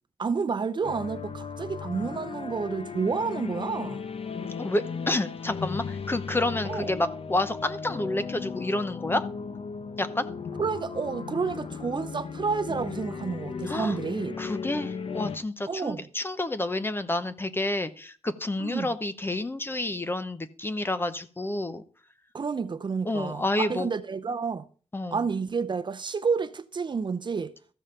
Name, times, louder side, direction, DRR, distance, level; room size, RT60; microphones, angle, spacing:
voice 1, 0.2-4.0 6.6-6.9 10.6-14.4 15.7-16.0 18.6-19.0 22.3-24.7 25.1-27.5, right 5 dB, 40° right, 0.7 m, -30 dB
sound 1, 0.8-15.4, left 5 dB, 55° left, 0.9 m, -36 dB
voice 2, 4.6-9.3 10.0-10.3 13.6-14.0 14.4-21.8 23.0-23.9 24.9-25.2, left 2 dB, 20° left, 0.8 m, -29 dB
14.0 x 5.5 x 6.7 m
wide cardioid pair, 140°, 12 cm